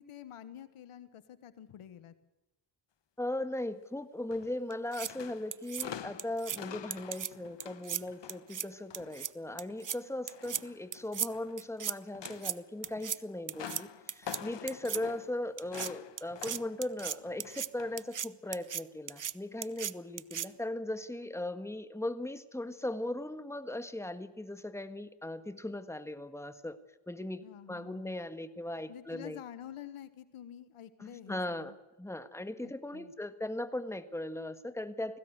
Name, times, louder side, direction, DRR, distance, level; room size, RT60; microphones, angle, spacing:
voice 1, 0.0-2.1 27.4-28.2 28.9-31.7 32.6-33.1, left 10 dB, 85° left, 13 dB, 1.4 m, -49 dB
voice 2, 3.2-26.8 27.1-27.4 27.7-29.4 31.0-35.2, left 1 dB, 5° left, 10 dB, 1.6 m, -38 dB
sound 1, 4.3-4.8 5.1-9.2 9.6-11.6 12.0-18.1 18.4-18.7 19.7-19.9 20.5-20.6, left 8 dB, 60° left, 1.2 m, -48 dB
sound 2, 4.7-5.1 5.5-5.8 6.2-6.6 6.9-7.3 7.6-8.0 8.3-8.6 8.9-9.3 9.6-10.0 10.3-10.6 10.9-11.3 11.6-11.9 12.2-12.5 12.8-13.2 13.5-13.8 14.1-14.4 14.7-15.0 15.6-15.9 16.2-17.7 18.0-18.3 18.5-18.8 19.1-19.3 19.6-19.9 20.2-20.5, right 8 dB, 40° right, 0.7 m, -36 dB
20.5 x 16.5 x 8.0 m, 1.0 s
cardioid pair, 60°, 50 cm